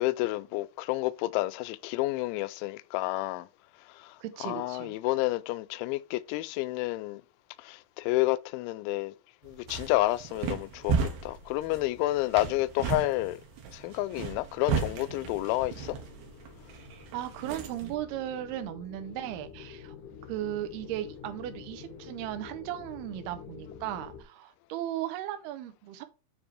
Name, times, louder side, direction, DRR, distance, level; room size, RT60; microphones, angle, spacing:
voice 1, 0.0-3.5 3.9-7.2 7.6-9.1 9.4-11.0 11.2-13.4 13.7-16.0, left 18 dB, 85° left, 2.7 m, -30 dB
voice 2, 4.2-5.0 17.1-19.9 20.3-26.0, right 13 dB, 85° right, 2.2 m, -36 dB
sound 1, 9.4-18.0, right 5 dB, 65° right, 3.0 m, -35 dB
sound 2, 15.0-24.2, left 6 dB, 65° left, 2.0 m, -48 dB
9.6 x 3.3 x 4.3 m
omnidirectional pair, 5.6 m